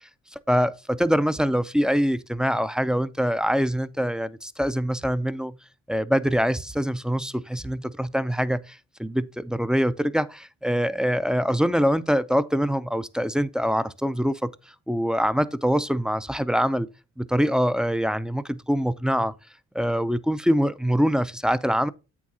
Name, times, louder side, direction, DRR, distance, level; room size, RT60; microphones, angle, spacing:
voice 1, 0.5-5.6 5.9-14.5 14.9-16.9 17.2-19.3 19.7-21.9, equal, 5° right, 0.3 m, -24 dB
8.1 x 6.1 x 2.7 m
cardioid pair, 90°, 30 cm